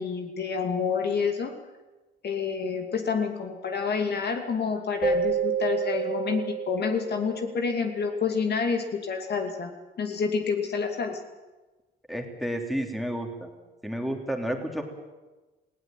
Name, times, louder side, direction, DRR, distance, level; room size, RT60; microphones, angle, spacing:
voice 1, 0.0-1.5 2.2-9.7 10.0-11.2, left 5 dB, 55° left, 4 dB, 2.7 m, -28 dB
Keyboard (musical), 5.0-7.8, right 6 dB, 20° right, 2.1 m, -29 dB
voice 2, 12.1-13.5 13.8-14.8, equal, ahead, 3 dB, 3.2 m, -31 dB
19.5 x 16.5 x 9.2 m, 1.2 s
cardioid pair, 90°, 20 cm